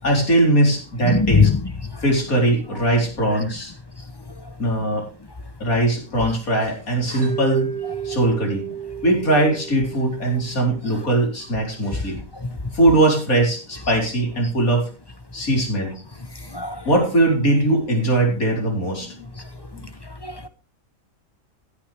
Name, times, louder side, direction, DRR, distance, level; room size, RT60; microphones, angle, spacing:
voice 1, 0.0-1.5 2.0-3.7 4.6-5.1 5.6-7.7 8.0-8.7 9.0-12.2 12.7-14.9 15.3-16.0 16.9-19.3 19.7-19.9, right 1 dB, 80° left, 4.4 m, -20 dB
voice 2, 1.1-1.6 16.5-16.8 20.2-20.5, left 5 dB, 20° left, 0.8 m, -19 dB
Mallet percussion, 7.2-11.3, right 9 dB, 90° right, 2.1 m, -33 dB
14.5 x 10.0 x 3.4 m
omnidirectional pair, 1.5 m